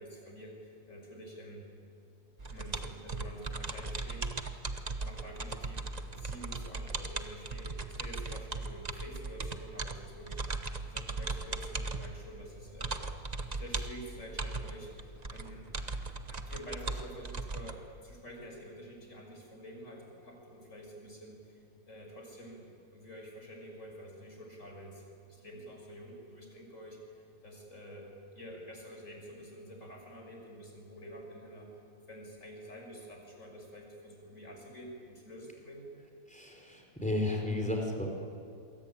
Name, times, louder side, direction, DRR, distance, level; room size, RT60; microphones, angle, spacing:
voice 1, 0.0-1.7 2.5-4.5 5.0-13.0 13.5-15.7 16.3-21.6 21.9-22.7 22.9-28.1 28.3-31.7 32.1-35.9, equal, 40° left, 0 dB, 6.7 m, -48 dB
sound 1, 2.4-17.8, right 3 dB, 25° right, 1.0 m, -38 dB
voice 2, 36.3-38.1, left 2 dB, 5° left, 1 dB, 4.6 m, -33 dB
27.0 x 23.0 x 8.8 m, 2.5 s
omnidirectional pair, 1.9 m